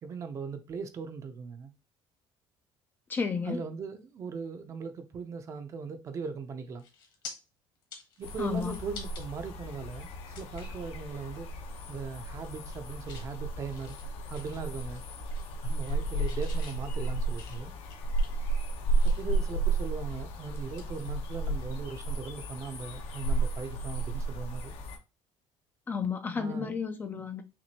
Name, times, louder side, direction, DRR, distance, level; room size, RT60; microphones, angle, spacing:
voice 1, 0.0-1.7 3.4-6.8 8.2-11.6 11.9-14.0 14.3-15.0 15.6-17.7 18.3-18.5 18.9-24.7 26.4-26.8 27.1-27.2, right 5 dB, 30° right, 0.6 m, -39 dB
voice 2, 3.1-3.6 8.4-8.8 25.9-27.4, left 5 dB, 20° left, 0.4 m, -32 dB
sound 1, 6.2-6.4 6.8-7.3 7.8-9.2 9.7-9.8 10.3-10.8 11.2-11.4 11.7-12.2 12.5-13.3 13.7-15.0 15.3-16.0 16.3-19.4 19.9-21.7 22.0-22.2 24.0-24.2, left 5 dB, 50° left, 1.3 m, -50 dB
sound 2, 8.2-25.0, right 2 dB, 70° left, 0.9 m, -33 dB
5.9 x 2.6 x 2.8 m
cardioid pair, 170°, 10 cm